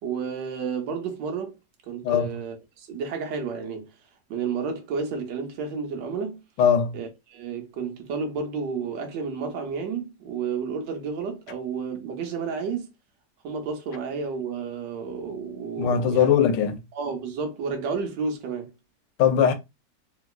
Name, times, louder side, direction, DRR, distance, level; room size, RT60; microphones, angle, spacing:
voice 1, 0.0-1.5 1.9-3.9 4.3-6.4 6.9-12.9 13.4-16.3 16.9-18.7, right 5 dB, 85° right, 1.5 m, -31 dB
voice 2, 6.6-7.0 15.8-16.8 19.2-19.5, left 8 dB, 85° left, 1.3 m, -20 dB
3.3 x 2.9 x 2.3 m
omnidirectional pair, 1.9 m